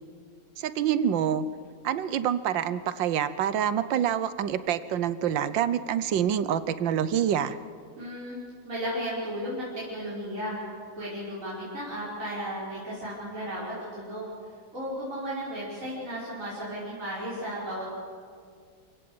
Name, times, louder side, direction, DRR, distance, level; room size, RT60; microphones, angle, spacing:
voice 1, 0.6-1.5 1.8-7.6, right 9 dB, 75° right, 14 dB, 1.5 m, -26 dB
voice 2, 8.0-8.4 8.6-10.6 11.0-14.2 14.7-17.8, equal, 40° right, -9 dB, 5.9 m, -34 dB
27.0 x 17.0 x 7.8 m, 2.2 s
omnidirectional pair, 2.1 m